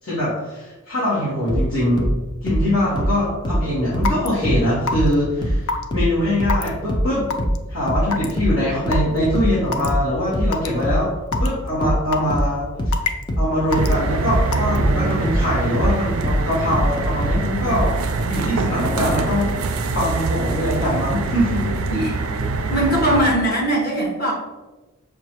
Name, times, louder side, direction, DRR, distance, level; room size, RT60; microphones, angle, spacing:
voice 1, 0.0-2.1 2.4-7.3 7.7-11.1 11.4-12.9 13.4-17.9 18.3-19.5 19.9-21.7, left 1 dB, 65° left, -11 dB, 1.4 m, -22 dB
sound 1, 1.5-4.7 4.9-18.0, equal, 20° left, 0.4 m, -22 dB
Raindrop / Water tap faucet / Drip, 4.1-4.3 4.9-5.1 5.7-5.8 6.5-6.7 7.3-7.6 8.1-8.3 8.9-9.0 9.7-9.9 10.5-10.7 11.3-11.5 12.1-12.4 12.9-13.2 13.7-13.9 14.5-14.8, left 4 dB, 80° left, 0.4 m, -24 dB
sound 2, 13.7-23.2, right 3 dB, 80° right, 0.4 m, -24 dB
voice 2, 22.7-24.3, right 1 dB, 45° left, -5 dB, 1.3 m, -20 dB
5.9 x 2.3 x 2.9 m, 1.2 s
head